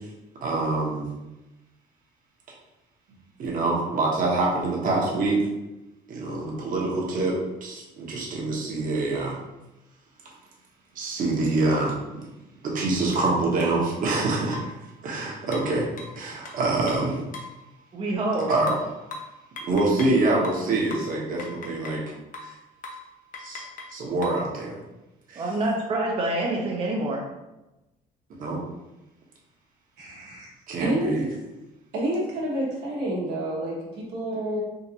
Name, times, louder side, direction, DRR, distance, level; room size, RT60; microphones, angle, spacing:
voice 1, 0.4-1.1 3.4-5.4 6.1-9.4 10.9-12.0 12.6-14.6 15.0-15.9 16.1-17.2 18.5-18.7 19.6-22.0 22.4-22.5 23.4-24.8 25.3-25.4 28.4-28.6 30.7-31.2, right 2 dB, 55° right, -3 dB, 1.1 m, -25 dB
sound 1, 13.1-13.3 13.6-13.7 14.1-14.8 15.5-17.6 18.7-20.2 20.4-22.1 22.3-22.6 22.8-23.1 23.3-24.5, left 3 dB, 50° left, 0.6 m, -40 dB
voice 2, 17.9-18.5 25.4-27.2, right 2 dB, 30° right, -2 dB, 0.6 m, -26 dB
voice 3, 30.0-30.5 30.8-31.4 31.9-34.6, right 1 dB, 85° right, -5 dB, 1.2 m, -29 dB
3.7 x 2.5 x 2.9 m, 0.98 s
cardioid pair, 110°, 17 cm